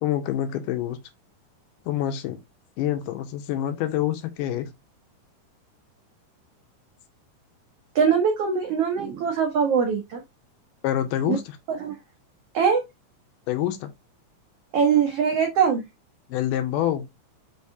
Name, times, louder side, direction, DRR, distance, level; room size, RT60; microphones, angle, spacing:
voice 1, 0.0-1.0 1.9-2.4 2.8-4.7 10.8-11.6 13.5-13.9 16.3-17.1, left 12 dB, 85° left, 2.3 m, -26 dB
voice 2, 7.9-10.2 11.3-11.4 11.7-11.9 12.5-12.8 14.7-15.8, right 6 dB, 85° right, 1.3 m, -22 dB
5.3 x 3.5 x 2.7 m
omnidirectional pair, 3.8 m